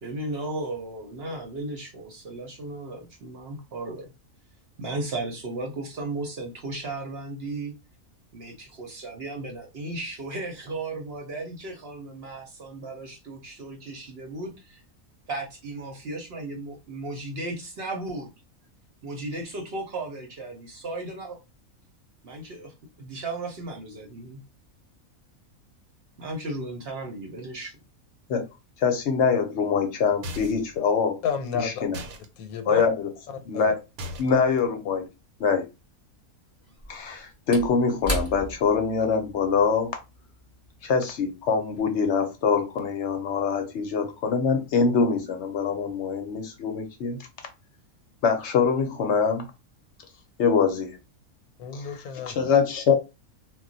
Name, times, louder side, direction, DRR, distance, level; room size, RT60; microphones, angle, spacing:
voice 1, 0.0-4.1 4.8-7.7 8.3-14.8 15.3-18.3 19.0-21.4 22.2-24.4 26.2-27.7, right 2 dB, 55° right, 0.8 m, -35 dB
voice 2, 28.8-31.2 31.6-32.0 32.7-33.1 33.5-33.8 34.2-35.0 35.4-35.7 36.9-39.9 40.8-47.2 48.2-49.5 50.4-51.0 51.7-51.9 52.3-52.9, left 5 dB, 60° left, 0.8 m, -24 dB
sound 1, 30.2-30.7 31.9-32.3 34.0-34.5, equal, 80° right, 1.1 m, -37 dB
voice 3, 31.2-31.8 32.4-32.8 33.5-33.7 51.6-52.5, left 7 dB, 90° left, 1.1 m, -31 dB
Slam / Wood, 35.1-35.2 36.6-41.3 41.6-41.8, right 1 dB, 15° left, 0.6 m, -36 dB
2.3 x 2.2 x 3.8 m
omnidirectional pair, 1.5 m